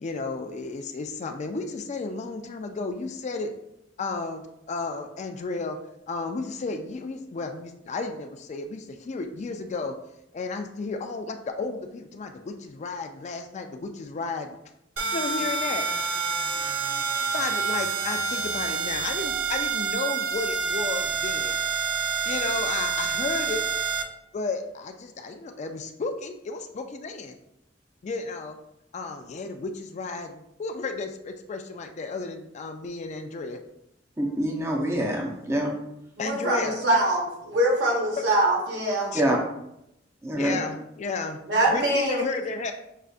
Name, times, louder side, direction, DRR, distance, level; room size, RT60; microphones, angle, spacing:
voice 1, 0.0-3.5 4.0-5.8 6.1-9.9 10.3-14.6 15.1-15.9 17.3-21.6 22.2-23.6 24.3-27.3 28.0-28.6 28.9-33.6 36.2-36.8 39.1-39.2 40.3-41.4 41.7-42.7, left 3 dB, 40° left, 6 dB, 0.3 m, -33 dB
sound 1, 15.0-24.0, right 5 dB, 85° right, 0.5 m, -28 dB
voice 2, 34.2-35.7 39.1-39.4 40.2-40.6, right 1 dB, 15° right, -1 dB, 0.6 m, -25 dB
voice 3, 36.2-39.1 41.5-42.2, right 1 dB, 70° right, -1 dB, 1.2 m, -23 dB
6.4 x 2.4 x 2.4 m, 0.83 s
head